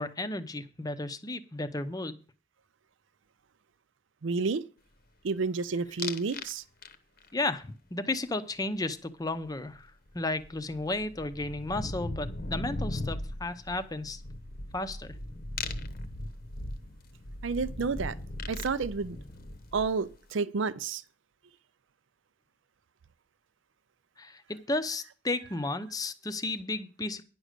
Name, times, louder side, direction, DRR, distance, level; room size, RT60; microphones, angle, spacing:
voice 1, 0.0-2.2 7.3-14.2 14.7-15.1 24.2-27.2, left 2 dB, 20° left, 0.6 m, -33 dB
voice 2, 4.2-4.6 5.2-6.6 17.4-18.1 18.5-19.2 19.7-21.0, right 4 dB, 70° right, 0.5 m, -30 dB
sound 1, 6.0-6.5 6.8-7.3 9.7-9.8 10.1-20.1, left 2 dB, 50° left, 0.9 m, -38 dB
10.0 x 6.3 x 6.6 m
head